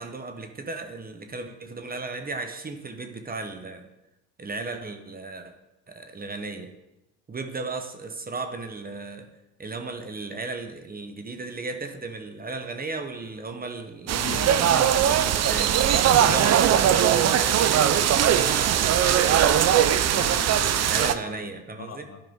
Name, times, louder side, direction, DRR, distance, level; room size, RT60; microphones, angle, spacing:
voice 1, 0.0-3.9 4.4-5.5 5.9-6.7 7.3-9.3 9.6-14.2 14.6-20.0 20.8-22.1, right 3 dB, 20° right, 5 dB, 1.0 m, -35 dB
voice 2, 14.1-14.8 16.3-16.5 20.1-22.2, left 6 dB, 35° left, 7 dB, 0.9 m, -38 dB
sound 1, 14.1-21.1, right 10 dB, 40° right, 0.6 m, -20 dB
11.0 x 4.9 x 3.7 m, 0.92 s
supercardioid pair, 75°, 42 cm